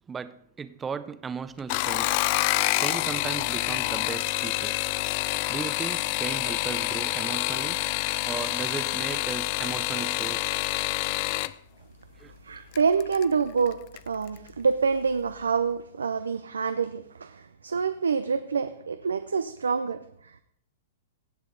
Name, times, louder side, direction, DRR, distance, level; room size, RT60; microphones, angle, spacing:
voice 1, 0.1-2.2 2.6-4.8 5.5-7.9 8.3-10.5 12.2-12.3, right 6 dB, 15° right, 0.6 m, -36 dB
sound 1, 1.6-11.5 12.7-13.2 13.7-14.1 14.4-14.5, left 18 dB, 45° left, 0.4 m, -27 dB
voice 2, 12.4-20.4, right 5 dB, 85° right, 0.5 m, -27 dB
17.0 x 6.5 x 3.9 m
hypercardioid pair, 125°, 0 cm